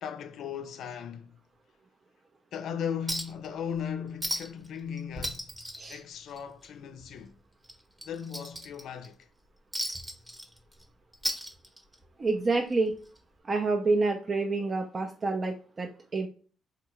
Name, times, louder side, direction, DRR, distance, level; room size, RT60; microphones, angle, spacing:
voice 1, 0.0-1.4 2.5-5.5 5.9-7.4 8.0-9.2, left 7 dB, 75° left, 0.4 m, -37 dB
Chink clink, 3.1-3.5 3.8-3.9 4.2-4.7 5.0-6.7 7.0-7.2 7.6-9.1 9.7-10.8 11.1-12.1 13.2-13.3, equal, 10° right, 0.8 m, -35 dB
voice 2, 12.2-12.9 13.5-16.3, right 3 dB, 35° right, 0.4 m, -28 dB
3.7 x 2.2 x 2.9 m
cardioid pair, 90°, 0 cm